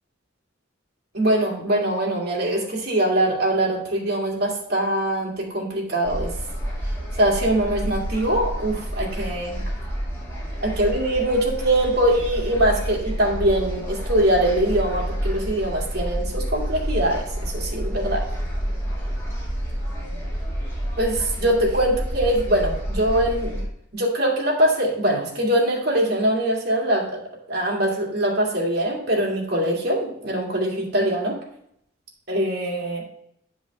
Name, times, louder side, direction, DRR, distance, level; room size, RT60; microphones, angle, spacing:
voice 1, 1.1-6.3 7.2-9.6 10.6-18.2 21.0-23.6 23.9-27.2 27.5-31.4 32.3-33.0, right 1 dB, 50° right, -2 dB, 2.3 m, -22 dB
sound 1, 6.0-23.6, equal, 15° left, 2.4 m, -29 dB
9.9 x 5.3 x 3.4 m, 0.72 s
head